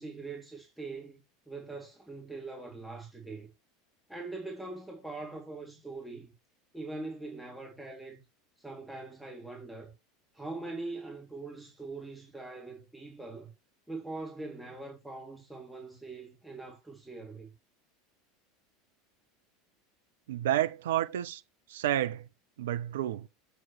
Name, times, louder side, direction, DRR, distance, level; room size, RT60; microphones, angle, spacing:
voice 1, 0.0-3.5 4.1-6.3 6.7-8.2 8.6-9.9 10.3-13.5 13.9-17.5, right 3 dB, 5° right, 2.2 m, -42 dB
voice 2, 20.3-21.4 21.7-22.3 22.6-23.3, right 12 dB, 65° right, 0.6 m, -30 dB
7.6 x 5.6 x 4.3 m
figure-of-eight pair, 80°, 0 cm